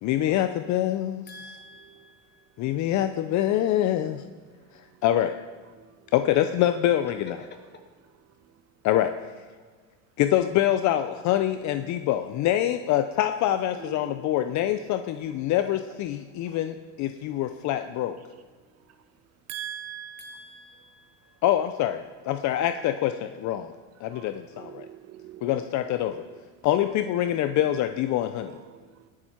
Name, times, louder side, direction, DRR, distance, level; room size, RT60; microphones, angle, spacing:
voice 1, 0.0-1.2 2.6-4.2 5.0-5.4 6.1-7.4 8.8-9.1 10.2-18.2 21.4-23.7 24.0-24.9 25.4-26.2 26.6-28.6, left 12 dB, 45° left, 9 dB, 0.6 m, -25 dB
voice 2, 1.3-2.5 6.2-7.6 20.2-21.5, left 2 dB, 25° left, 3 dB, 2.2 m, -47 dB
voice 3, 5.8-6.1 13.8-14.4 16.3-16.6 18.9-19.0 19.5-20.7 24.1-26.3 26.8-26.9 28.5-29.1, right 10 dB, 40° right, 10 dB, 0.7 m, -43 dB
19.5 x 7.5 x 4.4 m, 1.5 s
supercardioid pair, 115°, 40 cm